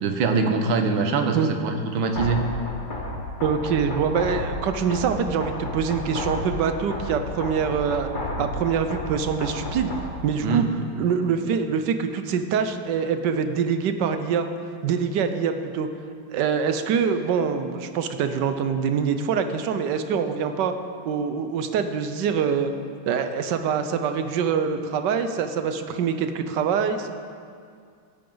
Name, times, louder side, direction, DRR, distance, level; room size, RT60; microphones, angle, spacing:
voice 1, 0.0-2.5 10.4-10.7, right 4 dB, 85° right, 5 dB, 1.7 m, -23 dB
sound 1, 2.2-10.2, left 1 dB, 30° left, 1.2 m, -32 dB
voice 2, 3.4-8.1 8.4-9.9 10.2-10.7 10.9-14.5 14.8-15.9 16.3-20.7 21.0-22.7 23.1-27.1, right 6 dB, 70° right, 8 dB, 1.3 m, -24 dB
16.0 x 9.0 x 3.9 m, 2.2 s
omnidirectional pair, 2.1 m